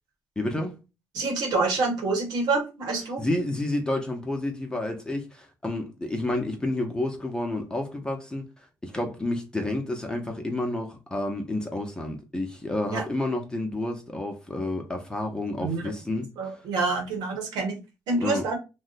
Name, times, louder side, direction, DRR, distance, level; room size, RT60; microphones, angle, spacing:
voice 1, 0.4-0.8 3.2-8.5 8.8-16.6 18.2-18.4, left 1 dB, 10° left, 0.6 m, -30 dB
voice 2, 1.1-3.3 12.9-13.0 15.6-15.9 16.4-17.8 18.1-18.6, right 3 dB, 90° right, 1.2 m, -27 dB
2.7 x 2.1 x 3.9 m
cardioid pair, 85°, 7 cm